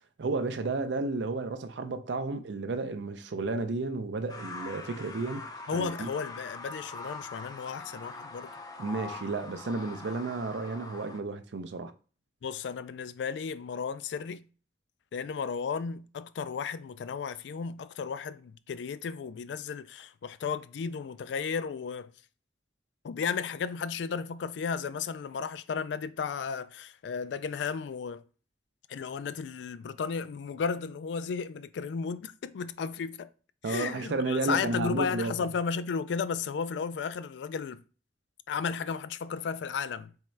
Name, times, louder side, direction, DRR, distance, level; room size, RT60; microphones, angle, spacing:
voice 1, 0.2-6.1 8.8-11.9 33.6-35.5, right 3 dB, 80° right, 0.5 m, -32 dB
sound 1, 4.3-11.2, left 3 dB, 20° left, 0.5 m, -43 dB
voice 2, 5.7-8.5 12.4-14.4 15.1-22.1 23.0-28.2 28.9-33.3 33.6-37.8 38.5-40.1, left 6 dB, 80° left, 0.3 m, -34 dB
3.6 x 3.1 x 4.4 m
head